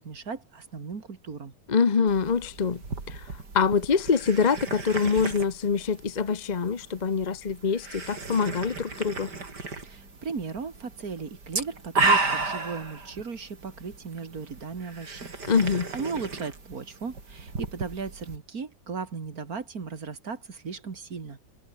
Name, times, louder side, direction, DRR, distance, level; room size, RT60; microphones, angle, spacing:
voice 1, 0.0-1.5 9.8-15.3 15.6-21.4, right 5 dB, 60° right, 2.7 m, -36 dB
voice 2, 1.7-2.8 3.1-3.3 3.5-9.3 15.5-15.9, left 5 dB, 35° left, 0.9 m, -25 dB
sound 1, 2.1-18.4, right 3 dB, 80° right, 4.6 m, -33 dB
omnidirectional pair, 1.8 m